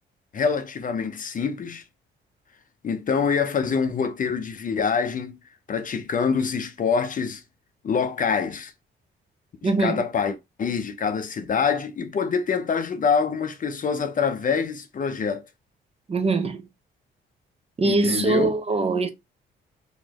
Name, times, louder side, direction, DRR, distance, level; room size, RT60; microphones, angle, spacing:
voice 1, 0.3-1.8 2.8-5.4 5.7-7.4 7.8-8.7 9.6-15.5 17.8-18.5, left 6 dB, 45° left, 0.7 m, -25 dB
voice 2, 9.6-10.0 16.1-16.7 17.8-19.1, right 3 dB, 30° right, 0.8 m, -22 dB
4.2 x 3.0 x 2.9 m
cardioid pair, 90°, 20 cm